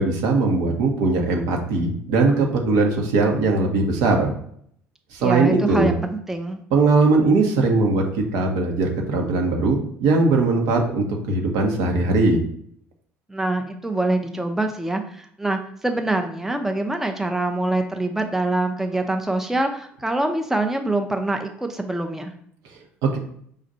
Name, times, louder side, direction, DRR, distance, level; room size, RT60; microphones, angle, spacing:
voice 1, 0.0-4.3 5.1-5.9 6.7-12.4 23.0-23.2, right 3 dB, 65° right, 2 dB, 1.0 m, -20 dB
voice 2, 5.2-6.6 13.3-22.3, right 2 dB, 5° right, 5 dB, 0.5 m, -25 dB
5.2 x 2.5 x 4.1 m, 0.66 s
hypercardioid pair, 60°, 7 cm